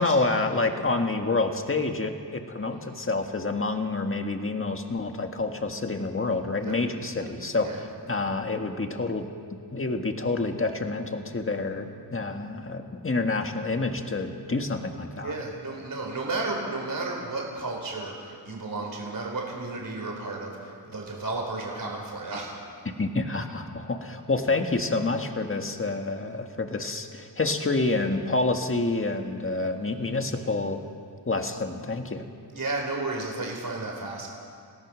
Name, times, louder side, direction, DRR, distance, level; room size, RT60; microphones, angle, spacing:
voice 1, 0.0-9.2 9.7-15.4 23.0-30.8 31.2-32.2, left 3 dB, 30° left, 5 dB, 1.7 m, -28 dB
voice 2, 15.2-22.5 32.5-34.3, right 2 dB, 50° right, 0 dB, 4.3 m, -33 dB
28.5 x 17.5 x 6.3 m, 2.3 s
wide cardioid pair, 105°, 43 cm